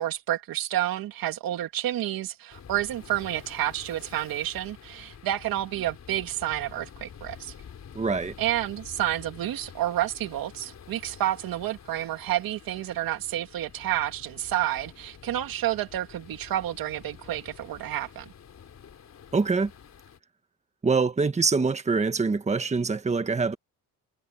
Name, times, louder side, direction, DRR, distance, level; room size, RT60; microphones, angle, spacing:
voice 1, 0.0-7.5 8.4-18.3, right 13 dB, 80° right, 2.3 m, -30 dB
sound 1, 2.5-20.2, left 8 dB, 50° left, 4.0 m, -48 dB
voice 2, 7.9-8.3 19.3-19.7 20.8-23.5, right 4 dB, 20° right, 1.4 m, -24 dB
cardioid pair, 125°, 34 cm